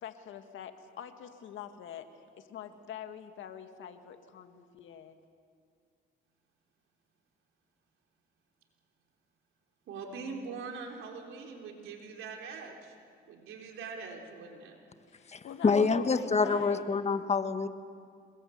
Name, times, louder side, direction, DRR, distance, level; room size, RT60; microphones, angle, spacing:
voice 1, 0.0-5.2 15.1-16.9, left 9 dB, 75° left, 7 dB, 1.9 m, -45 dB
voice 2, 9.9-12.9 13.3-14.8, right 4 dB, 85° right, 1 dB, 4.0 m, -42 dB
voice 3, 15.3-17.7, left 4 dB, 35° left, 9 dB, 1.4 m, -27 dB
27.5 x 21.0 x 8.0 m, 2.2 s
cardioid pair, 90°, 20 cm